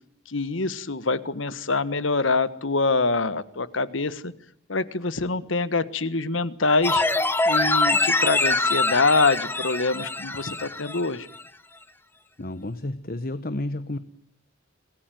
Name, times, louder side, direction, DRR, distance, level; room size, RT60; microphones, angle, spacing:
voice 1, 0.3-4.3 4.7-7.0 7.4-11.3, left 3 dB, 75° left, 15 dB, 1.5 m, -25 dB
sound 1, 6.8-11.1 11.4-11.5, left 2 dB, 10° left, 1.3 m, -24 dB
voice 2, 12.4-14.0, left 1 dB, 45° left, 13 dB, 1.2 m, -31 dB
27.0 x 19.5 x 9.2 m, 0.68 s
head